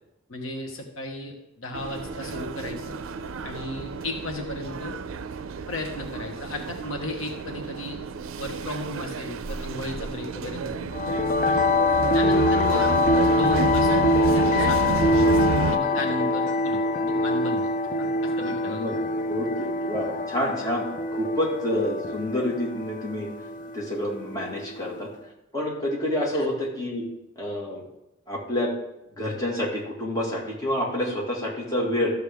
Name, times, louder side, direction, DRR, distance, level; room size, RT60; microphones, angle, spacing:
voice 1, 0.3-2.9 3.4-5.0 5.7-8.0 8.4-10.9 11.4-11.7 12.1-12.8 13.3-15.3 15.7-17.7 18.0-18.8 26.3-26.5, left 2 dB, 75° left, 3 dB, 1.2 m, -34 dB
sound 1, 1.7-15.8, right 5 dB, 75° right, 0.4 m, -31 dB
sound 2, 10.9-25.0, left 2 dB, 40° left, 0.6 m, -24 dB
voice 2, 18.4-19.0 19.3-23.3 23.7-25.1 25.5-27.0 27.4-27.8 28.3-28.7 29.2-32.1, left 1 dB, 20° left, -4 dB, 2.0 m, -28 dB
13.0 x 6.7 x 3.5 m, 0.90 s
head